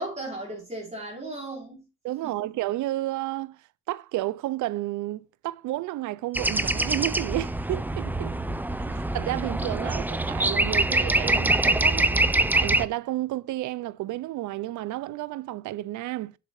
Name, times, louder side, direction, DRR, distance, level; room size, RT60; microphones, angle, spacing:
voice 1, 0.0-1.9 2.2-2.4 8.3-9.0, right 1 dB, 20° right, 4.5 m, -37 dB
voice 2, 2.0-8.4 8.9-12.3 12.5-16.3, right 16 dB, 75° right, 0.5 m, -31 dB
sound 1, 6.3-12.9, right 2 dB, 5° right, 0.5 m, -24 dB
7.9 x 7.4 x 3.1 m
cardioid pair, 90°, 30 cm